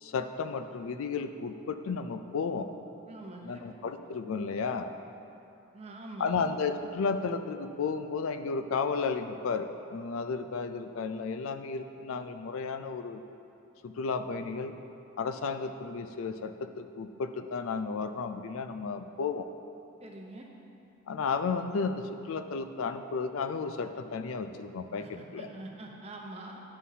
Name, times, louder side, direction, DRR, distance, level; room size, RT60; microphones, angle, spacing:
voice 1, 0.0-2.7 3.4-4.9 6.2-13.2 13.8-14.8 15.2-19.5 21.1-25.5, left 5 dB, 70° left, 9 dB, 0.4 m, -33 dB
voice 2, 3.1-3.7 5.7-6.4 20.0-20.5 25.0-26.6, right 2 dB, 30° right, -1 dB, 0.7 m, -45 dB
11.0 x 5.6 x 2.8 m, 2.7 s
head